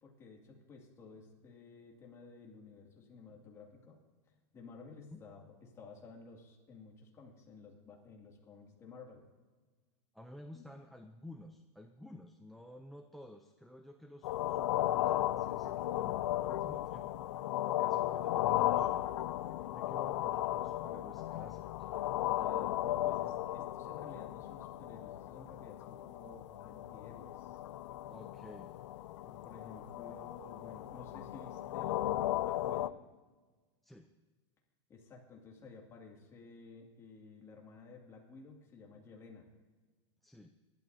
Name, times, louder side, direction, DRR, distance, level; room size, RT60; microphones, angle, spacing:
voice 1, 0.0-4.0 4.5-9.3 10.5-10.6 22.3-27.6 29.2-33.0 34.9-39.5, left 4 dB, 20° left, 0 dB, 2.3 m, -54 dB
voice 2, 10.1-17.2 17.8-19.1 19.7-21.9 28.1-28.7 33.8-34.1 40.2-40.5, left 1 dB, ahead, 6 dB, 0.4 m, -53 dB
sound 1, 14.2-32.9, left 14 dB, 80° left, 0.5 m, -35 dB
24.5 x 12.0 x 2.7 m, 1.3 s
supercardioid pair, 160°, 15 cm